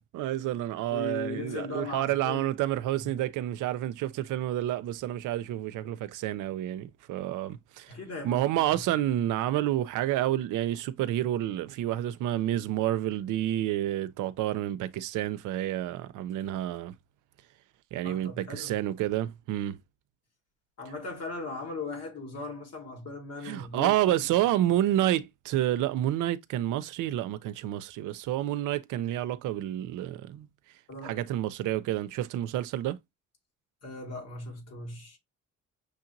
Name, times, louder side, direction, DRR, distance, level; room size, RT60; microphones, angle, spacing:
voice 1, 0.0-7.9 8.2-16.9 17.9-19.8 23.4-30.5 31.0-33.0, right 13 dB, 85° right, 0.5 m, -29 dB
voice 2, 0.9-2.5 2.9-3.1 7.9-8.8 9.1-9.2 18.0-18.8 20.8-24.3 30.9-31.3 33.8-35.2, left 3 dB, 55° left, 1.8 m, -38 dB
6.4 x 2.8 x 2.6 m
cardioid pair, 90°, 30 cm